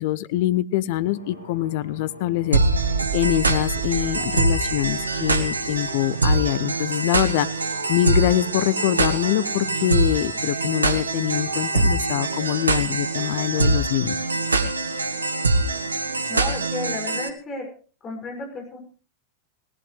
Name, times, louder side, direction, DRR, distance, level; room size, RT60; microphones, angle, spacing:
voice 1, 0.0-14.2, left 14 dB, 50° left, 18 dB, 0.8 m, -24 dB
sound 1, 1.0-16.9, equal, 80° left, 6.2 m, -44 dB
sound 2, 2.5-17.3, right 3 dB, 75° right, 1.3 m, -24 dB
voice 2, 16.3-17.7 18.0-18.8, left 3 dB, 25° left, 2 dB, 6.4 m, -33 dB
19.5 x 18.5 x 3.3 m, 0.38 s
figure-of-eight pair, 90°, 0 cm